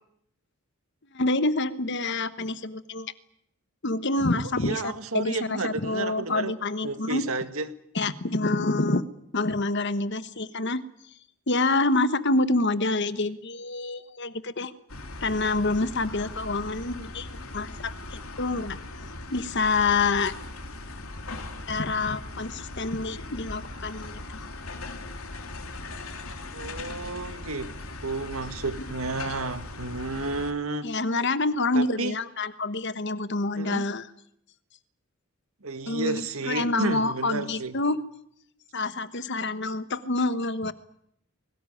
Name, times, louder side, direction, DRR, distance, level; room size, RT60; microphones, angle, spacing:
voice 1, 1.1-3.1 3.8-7.2 7.9-9.1 9.3-10.8 11.5-14.7 15.2-17.3 17.5-18.8 19.3-20.3 21.7-24.2 28.8-28.9 30.8-34.1 35.8-38.0 38.7-40.7, left 2 dB, 55° left, 1.2 m, -27 dB
voice 2, 4.6-6.5 6.8-7.7 26.5-27.7 28.0-30.9 31.7-32.2 33.6-33.9 35.6-37.8, right 3 dB, 75° right, 1.8 m, -31 dB
sound 1, 14.9-30.5, left 2 dB, 75° left, 3.2 m, -39 dB
22.5 x 18.5 x 10.0 m
head